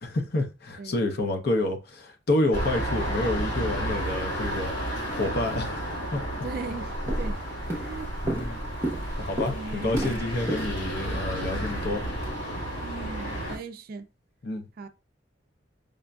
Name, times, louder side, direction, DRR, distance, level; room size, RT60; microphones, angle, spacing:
voice 1, 0.0-4.7 5.1-6.2 8.2-8.7 9.2-12.0 14.4-14.7, left 2 dB, 55° left, 0.7 m, -29 dB
voice 2, 0.8-1.1 6.4-7.4 7.8-8.1 9.5-10.2 12.8-14.1 14.8-14.9, right 4 dB, 50° right, 0.4 m, -38 dB
sound 1, 2.5-13.6, right 1 dB, 75° left, 2.1 m, -32 dB
Walk footsteps, 6.5-6.7 7.1-7.4 7.7-12.3, right 1 dB, 15° right, 0.9 m, -34 dB
5.1 x 2.5 x 2.2 m
head